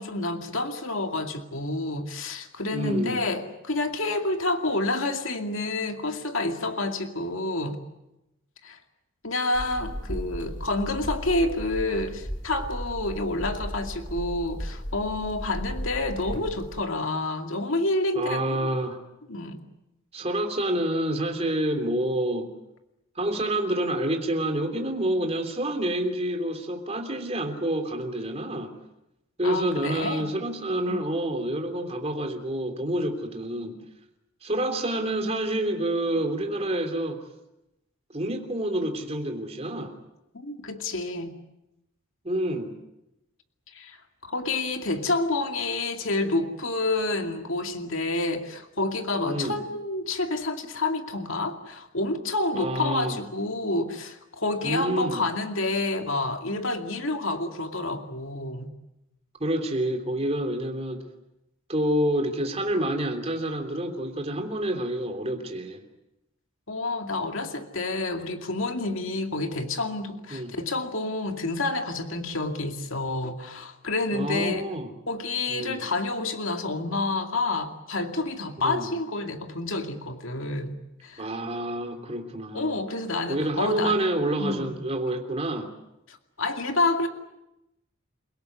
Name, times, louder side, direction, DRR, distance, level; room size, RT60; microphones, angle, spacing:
voice 1, 0.0-7.8 8.6-8.8 9.2-18.7 19.3-19.6 29.4-30.3 30.9-31.0 40.3-41.4 43.7-44.0 44.2-58.7 66.7-74.7 75.1-80.7 81.0-81.3 82.5-84.0 84.4-84.8 86.1-87.1, left 2 dB, 65° left, 5 dB, 2.4 m, -29 dB
voice 2, 2.7-3.2 18.1-19.0 20.1-22.5 23.1-28.7 29.4-33.8 34.4-37.2 38.1-39.9 42.2-42.7 49.2-49.6 52.5-53.2 54.6-55.2 59.4-61.0 61.7-65.8 70.3-70.5 74.1-74.9 75.5-75.8 78.6-78.9 81.2-82.8 83.3-85.7, right 1 dB, 30° right, 5 dB, 3.2 m, -28 dB
sound 1, 9.5-16.8, equal, 20° left, 4.0 m, -36 dB
29.0 x 17.5 x 9.4 m, 0.91 s
head